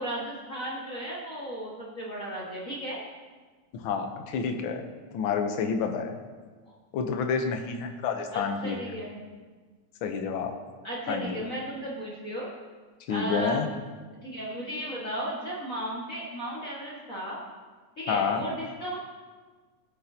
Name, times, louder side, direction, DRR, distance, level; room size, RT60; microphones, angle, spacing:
voice 1, 0.0-3.0 6.7-6.8 8.3-9.2 10.8-12.5 13.1-13.6 14.2-17.4 18.0-19.0, right 1 dB, 35° left, -6 dB, 1.6 m, -35 dB
voice 2, 3.7-4.8 5.1-6.1 6.9-8.8 10.0-10.6 11.1-11.4 13.1-13.7 18.1-18.4, left 6 dB, 80° left, 5 dB, 1.1 m, -29 dB
18.5 x 9.2 x 2.8 m, 1.4 s
omnidirectional pair, 3.4 m